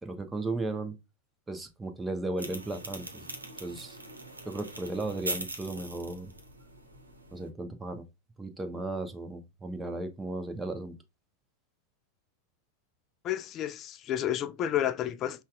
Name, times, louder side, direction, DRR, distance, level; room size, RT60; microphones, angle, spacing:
voice 1, 0.0-1.0 1.5-3.2 3.6-4.0 4.4-6.3 7.3-8.0 8.4-10.9, right 2 dB, 10° right, 0.7 m, -35 dB
sound 1, 2.4-7.5, right 2 dB, 80° right, 0.9 m, -41 dB
voice 2, 13.2-15.4, left 11 dB, 30° left, 0.3 m, -31 dB
5.4 x 2.4 x 2.3 m
figure-of-eight pair, 90°, 0 cm